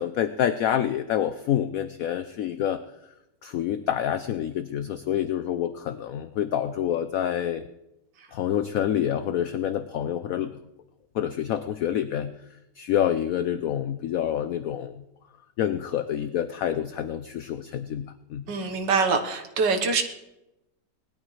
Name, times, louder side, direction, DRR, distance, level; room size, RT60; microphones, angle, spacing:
voice 1, 0.0-2.8 3.4-7.7 8.3-10.6 11.1-12.3 12.8-15.0 15.6-18.4, left 10 dB, 70° left, 10 dB, 0.8 m, -27 dB
voice 2, 18.5-20.0, right 4 dB, 85° right, 6 dB, 1.9 m, -24 dB
19.5 x 12.5 x 3.2 m, 0.92 s
omnidirectional pair, 1.9 m